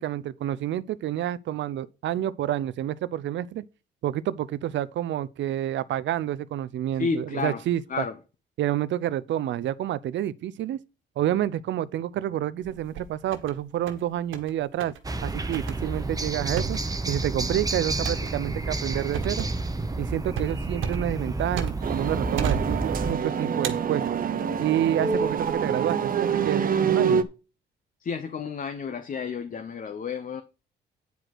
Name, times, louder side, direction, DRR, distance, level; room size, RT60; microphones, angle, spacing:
voice 1, 0.0-3.7 4.0-8.0 8.6-10.8 11.2-14.9 15.2-16.8 17.1-19.5 20.0-24.1 24.6-27.2, right 12 dB, 70° right, 0.6 m, -29 dB
voice 2, 6.9-7.6 7.9-8.1 28.0-30.4, left 5 dB, 45° left, 1.0 m, -31 dB
sound 1, 12.6-13.5 13.9-14.5 14.8-15.0 15.5-22.0 22.4-23.2 23.6-24.6 25.1-25.5, right 7 dB, 85° right, 1.6 m, -34 dB
sound 2, 15.0-23.1, right 2 dB, 20° right, 1.0 m, -30 dB
sound 3, 21.8-27.2, right 6 dB, 45° right, 1.0 m, -26 dB
9.4 x 5.0 x 6.0 m
cardioid pair, 90°, 20 cm